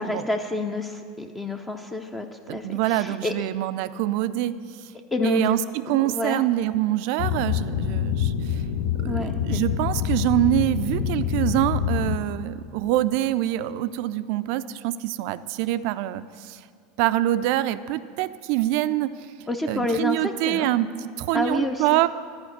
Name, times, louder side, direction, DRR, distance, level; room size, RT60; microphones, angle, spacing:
voice 1, 0.0-3.5 5.1-5.6 5.9-6.4 9.1-9.6 19.5-20.7 21.3-22.0, left 2 dB, 15° left, 5 dB, 0.6 m, -28 dB
voice 2, 2.5-4.6 5.2-8.3 9.0-16.2 17.0-19.1 19.7-22.1, right 15 dB, 60° right, 14 dB, 0.4 m, -25 dB
sound 1, 7.2-12.2, left 8 dB, 60° left, 0.6 m, -26 dB
11.5 x 5.1 x 8.1 m, 2.1 s
hypercardioid pair, 85°, 0 cm